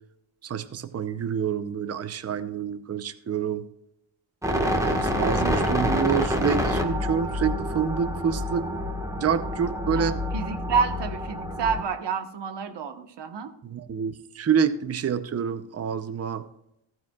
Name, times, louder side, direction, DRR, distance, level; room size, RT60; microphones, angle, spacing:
voice 1, 0.4-3.6 4.4-8.7 9.2-10.2 13.6-16.4, right 7 dB, 30° right, 12 dB, 0.7 m, -27 dB
sound 1, 4.4-11.8, equal, 5° right, 1.4 m, -27 dB
voice 2, 9.9-13.5, right 6 dB, 60° right, 8 dB, 1.2 m, -29 dB
14.5 x 9.2 x 2.3 m, 0.81 s
cardioid pair, 125°, 47 cm